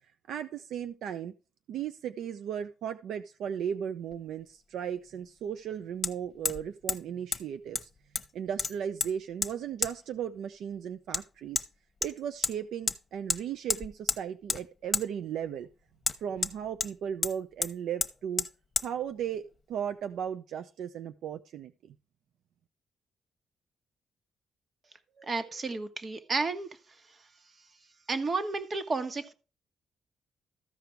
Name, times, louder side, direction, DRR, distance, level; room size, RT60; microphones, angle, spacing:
voice 1, 0.3-1.3 1.7-7.9 8.3-11.7 12.0-15.7 16.2-18.5 18.8-21.9, right 8 dB, 80° right, 0.6 m, -36 dB
Hammer, 4.1-4.2 6.0-6.1 6.4-6.6 6.9-7.0 7.3-7.4 7.7-8.3 8.6-9.1 9.4-9.5 9.8-9.9 11.1-11.2 11.6-11.7 12.0-12.5 12.9-13.0 13.3-13.4 13.7-14.2 14.5-14.6 14.9-15.1 16.0-16.9 17.2-17.3 17.6-17.7 18.0-18.1 18.4-18.5 18.8-18.9, left 5 dB, 40° left, 1.0 m, -30 dB
voice 2, 25.2-26.7 28.1-29.3, right 3 dB, 45° right, 1.4 m, -32 dB
14.0 x 5.1 x 4.6 m
cardioid pair, 70°, 0 cm